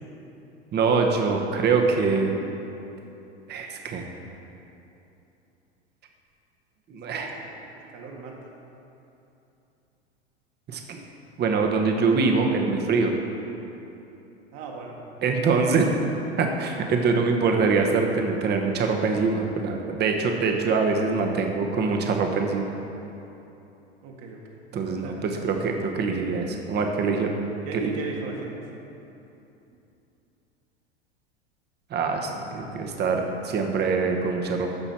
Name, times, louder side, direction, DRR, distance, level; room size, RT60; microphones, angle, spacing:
voice 1, 0.7-2.4 3.5-4.1 6.9-7.3 10.7-11.0 11.4-13.1 15.2-15.9 16.4-22.7 24.7-27.3 31.9-34.7, right 4 dB, 30° right, 3 dB, 1.1 m, -24 dB
voice 2, 7.1-7.5 7.9-8.4 14.5-15.0 24.0-24.4 25.0-25.2 27.0-27.1 27.6-28.6, right 4 dB, 50° right, -1 dB, 1.8 m, -36 dB
13.5 x 5.6 x 4.3 m, 2.9 s
hypercardioid pair, 90°, 33 cm